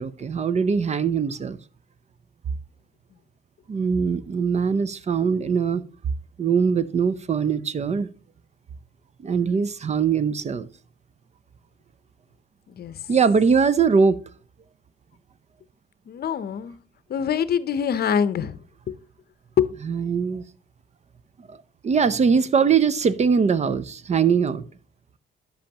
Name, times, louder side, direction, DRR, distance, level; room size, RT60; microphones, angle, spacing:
voice 1, 0.0-1.6 3.7-5.8 6.4-8.1 9.2-10.7 13.1-14.2 19.8-20.4 21.5-21.6 21.8-24.6, right 6 dB, 35° right, 0.5 m, -21 dB
voice 2, 16.1-16.8 17.1-18.6 18.9-19.0 19.6-19.7, left 8 dB, 50° left, 0.7 m, -24 dB
10.5 x 7.5 x 2.9 m
cardioid pair, 90°, 20 cm